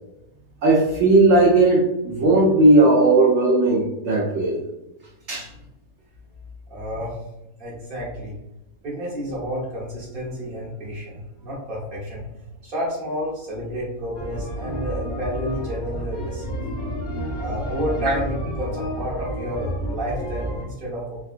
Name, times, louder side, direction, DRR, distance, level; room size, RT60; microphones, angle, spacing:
voice 1, 0.6-4.6 5.3-5.5, right 2 dB, 65° right, -4 dB, 0.8 m, -16 dB
voice 2, 6.7-7.2 7.6-8.4 8.8-12.3 12.6-16.6 17.4-21.2, equal, 40° right, -6 dB, 1.2 m, -30 dB
sound 1, 14.1-20.6, equal, 70° left, 1.2 m, -30 dB
3.7 x 2.3 x 2.4 m, 0.90 s
omnidirectional pair, 1.6 m